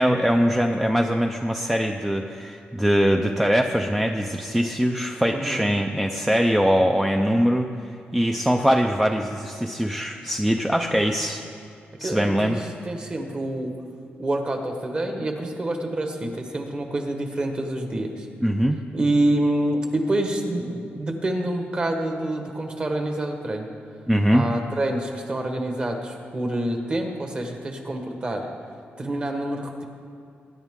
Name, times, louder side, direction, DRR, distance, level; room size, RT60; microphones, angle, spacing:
voice 1, 0.0-7.7 8.1-11.4 12.0-12.6 18.4-18.8 24.1-24.5, equal, 5° right, 3 dB, 0.5 m, -22 dB
voice 2, 5.3-5.6 12.0-13.7 14.2-18.3 18.9-23.7 24.3-28.5 29.0-29.9, right 1 dB, 25° right, 4 dB, 1.2 m, -27 dB
21.5 x 10.0 x 3.7 m, 2.4 s
wide cardioid pair, 180°, 4 cm